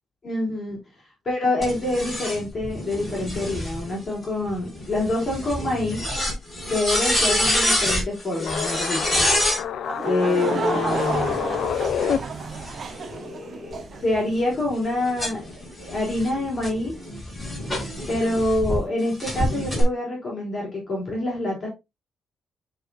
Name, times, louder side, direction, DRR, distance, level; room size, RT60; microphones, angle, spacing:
voice 1, 0.2-0.8 1.3-6.0 6.7-9.2 10.0-11.5 12.9-16.9 18.1-21.7, left 1 dB, 30° left, -3 dB, 3.7 m, -26 dB
sound 1, 1.6-9.6 10.8-13.1 13.7-18.8 19.2-19.8, left 1 dB, 10° left, 4.9 m, -27 dB
sound 2, 8.3-12.2, left 9 dB, 60° left, 0.6 m, -27 dB
Laughter / Crowd, 9.8-14.0, right 5 dB, 40° right, 0.7 m, -31 dB
9.5 x 4.7 x 2.7 m, 0.23 s
cardioid pair, 180°, 0 cm